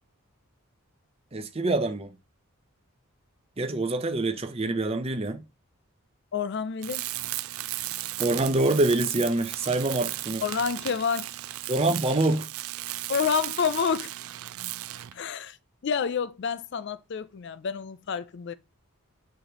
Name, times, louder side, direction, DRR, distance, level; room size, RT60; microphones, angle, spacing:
voice 1, 1.3-2.1 3.6-5.4 8.2-10.4 11.7-12.5, right 2 dB, 25° right, 0.6 m, -25 dB
voice 2, 6.3-7.0 10.4-11.3 13.1-14.1 15.1-15.6 15.8-18.5, left 6 dB, 50° left, 0.4 m, -28 dB
Tools, 6.8-15.2, right 16 dB, 80° right, 0.4 m, -35 dB
6.4 x 5.0 x 3.0 m
head